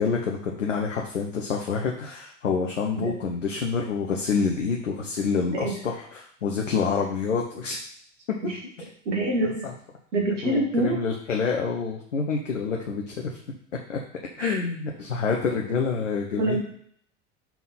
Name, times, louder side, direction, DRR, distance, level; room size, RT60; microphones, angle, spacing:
voice 1, 0.0-7.8 8.3-8.4 9.4-9.7 10.4-13.4 13.9-14.0 14.4-16.6, left 5 dB, 90° left, 1 dB, 0.8 m, -27 dB
voice 2, 9.1-9.7 10.1-11.0 14.4-14.6 16.4-16.6, right 2 dB, 80° right, -1 dB, 2.1 m, -26 dB
5.9 x 3.7 x 5.5 m, 0.64 s
hypercardioid pair, 70°, 36 cm